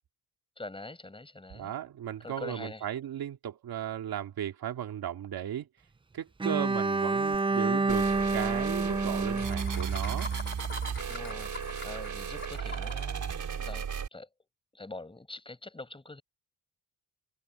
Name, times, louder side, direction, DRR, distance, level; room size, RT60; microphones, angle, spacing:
voice 1, 0.6-1.7 2.2-2.8 11.1-14.3 14.7-16.2, left 2 dB, 15° left, 5.8 m, -44 dB
voice 2, 1.5-5.7 6.1-10.3, right 10 dB, 80° right, 2.7 m, -36 dB
Bowed string instrument, 6.4-10.5, right 3 dB, 15° right, 0.5 m, -29 dB
Laughter, 7.3-7.4 7.7-7.8 8.0-8.2 9.4-13.0, left 4 dB, 30° left, 4.3 m, -44 dB
sound 1, 7.9-14.1, right 7 dB, 55° right, 5.2 m, -35 dB
cardioid pair, 120°, 36 cm